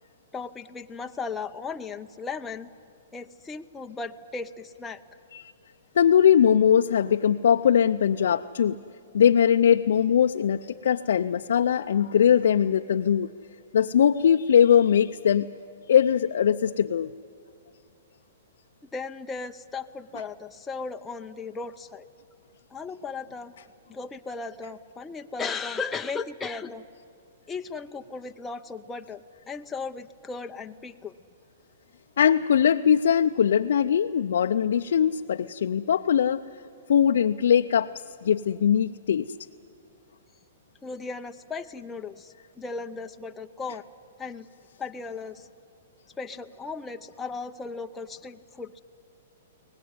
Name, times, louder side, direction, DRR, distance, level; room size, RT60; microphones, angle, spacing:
voice 1, 0.3-2.7 3.1-5.0 18.9-22.1 22.7-23.5 23.9-26.8 27.5-31.1 40.8-43.8 44.2-44.5 44.8-45.5 46.2-48.8, left 4 dB, 10° left, 5 dB, 0.6 m, -36 dB
voice 2, 6.0-8.8 9.1-13.3 13.7-15.5 15.9-17.1 32.2-36.4 36.9-37.9 38.2-39.3, left 8 dB, 75° left, 6 dB, 0.5 m, -21 dB
23.5 x 18.5 x 9.5 m, 2.6 s
hypercardioid pair, 140°, 0 cm